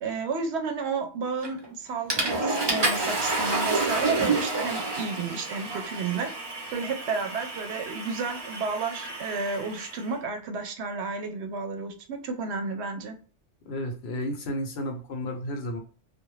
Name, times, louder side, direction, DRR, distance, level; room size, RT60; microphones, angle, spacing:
voice 1, 0.0-6.3 6.7-13.1, right 4 dB, 70° right, 5 dB, 0.8 m, -32 dB
Water / Toilet flush, 1.4-1.7 2.1-10.0, right 3 dB, 30° right, 0.5 m, -29 dB
voice 2, 13.6-15.8, left 1 dB, 65° left, 3 dB, 0.8 m, -32 dB
2.5 x 2.1 x 3.0 m, 0.38 s
omnidirectional pair, 1.2 m